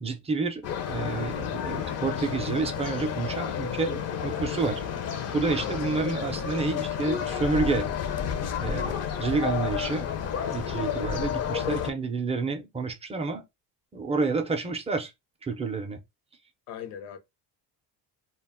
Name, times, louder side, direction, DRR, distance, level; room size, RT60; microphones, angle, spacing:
voice 1, 0.0-4.8 5.3-7.9 8.6-10.1 10.5-13.4 13.9-15.1 15.4-16.0, right 4 dB, 15° right, 0.4 m, -29 dB
sound 1, 0.6-11.9, left 8 dB, 40° left, 0.4 m, -31 dB
voice 2, 16.7-17.2, left 9 dB, 75° left, 0.7 m, -39 dB
2.2 x 2.0 x 3.3 m
cardioid pair, 125°, 41 cm